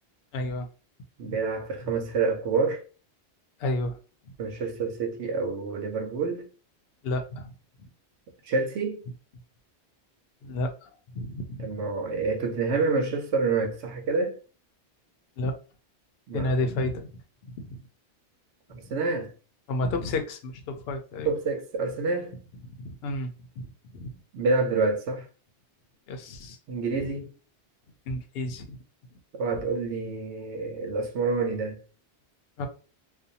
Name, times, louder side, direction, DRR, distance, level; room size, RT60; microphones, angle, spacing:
voice 1, 0.3-0.7 1.2-1.4 3.6-4.0 7.0-7.5 10.4-11.8 15.4-15.5 16.3-17.1 17.6-17.9 19.7-21.3 22.8-23.3 23.6-24.1 26.1-26.6 28.1-28.8 32.6-32.7, left 2 dB, 70° left, 0.8 m, -31 dB
voice 2, 1.2-2.8 4.4-6.4 8.4-9.0 11.6-14.4 16.3-16.6 18.7-19.3 21.2-22.4 24.3-25.3 26.7-27.3 29.3-31.8, right 4 dB, 90° right, 0.9 m, -28 dB
2.5 x 2.2 x 2.7 m
omnidirectional pair, 1.1 m